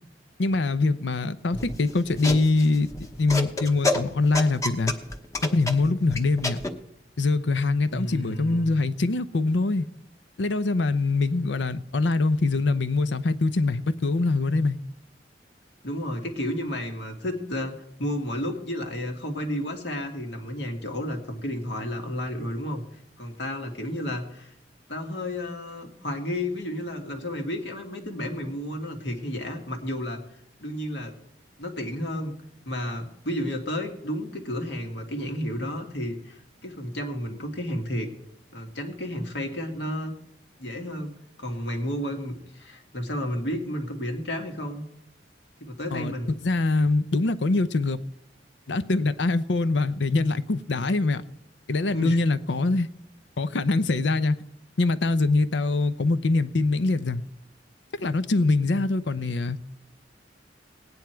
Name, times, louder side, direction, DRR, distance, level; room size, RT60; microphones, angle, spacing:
voice 1, 0.4-2.9 3.2-4.9 5.4-6.6 7.2-9.9 10.4-14.8 45.9-46.1 46.4-48.0 48.7-51.2 51.7-52.9 53.4-54.4 54.8-57.2 58.0-59.6, left 3 dB, 90° left, 0.7 m, -23 dB
sound 1, 1.5-6.7, left 2 dB, 20° left, 1.0 m, -29 dB
voice 2, 7.9-8.7 15.8-22.8 23.2-24.5 24.9-30.2 30.6-31.1 31.6-32.3 32.7-38.1 38.5-40.1 40.6-44.8 45.6-46.3 51.9-52.2, equal, 70° left, 2.0 m, -32 dB
17.5 x 9.6 x 4.6 m
head